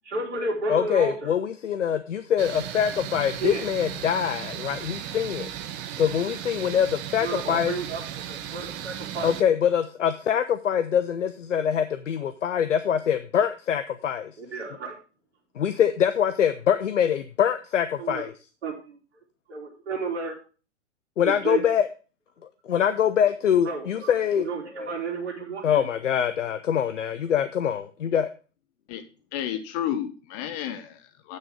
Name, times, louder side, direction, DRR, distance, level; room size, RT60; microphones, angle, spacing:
voice 1, 0.0-1.3 3.4-3.6 7.2-8.0 8.3-9.3 14.4-14.9 18.0-18.2 18.6-19.0 19.5-20.4 21.2-21.6 23.6-24.1 24.4-25.9, right 3 dB, 60° right, -6 dB, 3.2 m, -32 dB
voice 2, 0.7-5.5 6.0-7.7 9.2-14.3 15.6-18.3 21.2-21.9 22.6-24.5 25.6-28.3, left 8 dB, 70° left, 11 dB, 0.8 m, -24 dB
sound 1, 2.4-9.4, right 10 dB, 30° right, 0.9 m, -36 dB
voice 3, 29.3-31.4, left 10 dB, 30° left, 9 dB, 0.8 m, -31 dB
8.7 x 6.5 x 5.0 m, 0.36 s
figure-of-eight pair, 110°, 38 cm